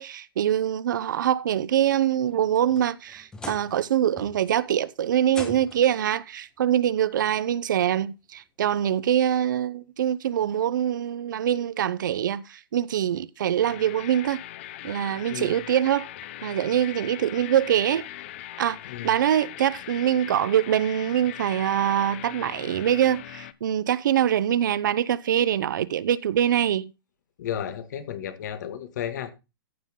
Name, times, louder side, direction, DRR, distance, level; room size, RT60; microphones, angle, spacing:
voice 1, 0.0-14.4 14.8-16.1 16.4-18.1 18.6-18.8 19.0-26.9, right 10 dB, 60° right, 0.6 m, -24 dB
sound 1, 2.3-3.9 4.2-4.6 5.3-6.0 7.1-7.2 7.9-8.0 9.6-9.7, left 3 dB, 5° left, 1.1 m, -42 dB
sound 2, 13.6-23.5, left 14 dB, 30° left, 0.5 m, -40 dB
voice 2, 27.4-29.3, left 9 dB, 50° left, 1.8 m, -33 dB
14.5 x 5.6 x 3.7 m
hypercardioid pair, 175°, 12 cm